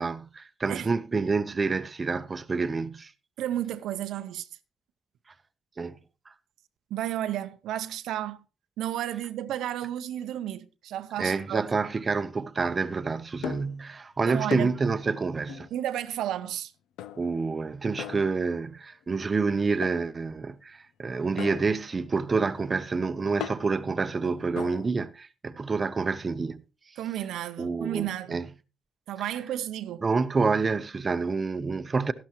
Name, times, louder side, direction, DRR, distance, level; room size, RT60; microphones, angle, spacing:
voice 1, 0.0-3.1 5.8-6.0 11.2-15.7 17.2-26.6 27.6-28.5 30.0-32.1, right 4 dB, 30° right, 0.7 m, -28 dB
voice 2, 3.4-4.5 6.9-8.4 8.8-11.6 14.3-14.7 15.7-16.7 27.0-28.4 29.1-30.0, right 12 dB, 80° right, 0.6 m, -32 dB
sound 1, 13.4-13.8 14.5-14.9 15.5-15.8 17.0-17.5 18.0-18.7 19.8-20.2 21.4-24.9, left 10 dB, 85° left, 0.6 m, -40 dB
12.5 x 12.0 x 3.0 m
cardioid pair, 90°, 0 cm